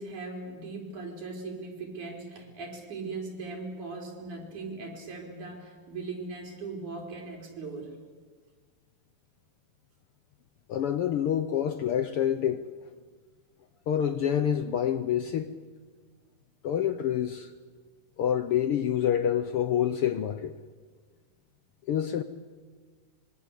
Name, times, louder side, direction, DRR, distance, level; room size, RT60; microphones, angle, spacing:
voice 1, 0.0-7.9, right 3 dB, 70° right, 1 dB, 5.7 m, -39 dB
voice 2, 10.7-12.6 13.9-15.5 16.6-17.5 18.2-20.6 21.9-22.2, left 9 dB, 75° left, 11 dB, 1.3 m, -27 dB
25.5 x 23.0 x 8.2 m, 1.5 s
omnidirectional pair, 3.5 m